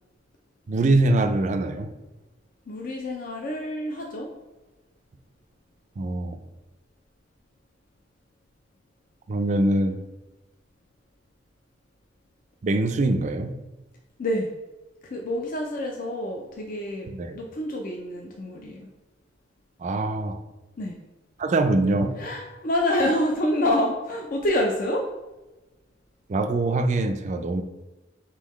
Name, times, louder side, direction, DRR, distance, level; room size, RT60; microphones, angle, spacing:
voice 1, 0.7-1.9 6.0-6.4 9.3-10.0 12.6-13.5 17.1-17.4 19.8-20.4 21.4-22.2 26.3-27.6, right 2 dB, 40° right, 7 dB, 0.3 m, -23 dB
voice 2, 2.7-4.3 14.2-14.5 15.0-17.1 17.3-18.9 20.8-21.0 22.2-25.0, left 1 dB, 45° left, 0 dB, 0.4 m, -27 dB
4.1 x 3.8 x 3.1 m, 1.1 s
head